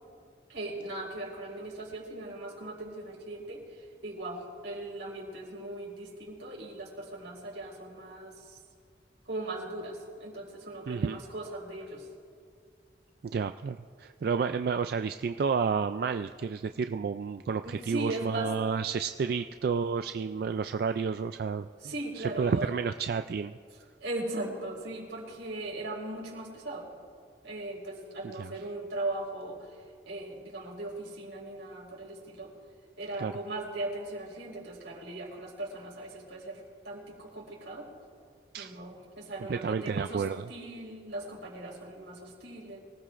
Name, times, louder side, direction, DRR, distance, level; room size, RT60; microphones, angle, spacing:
voice 1, 0.5-8.6 9.2-12.1 17.6-18.5 21.8-22.7 24.0-26.9 27.4-32.5 33.0-37.9 38.6-42.8, right 2 dB, 85° right, -2 dB, 4.5 m, -39 dB
voice 2, 10.9-11.2 13.2-21.7 22.2-23.5 28.2-28.5 33.2-33.3 38.5-38.8 39.5-40.5, right 5 dB, 55° right, 9 dB, 0.3 m, -31 dB
24.5 x 18.0 x 2.5 m, 2.2 s
head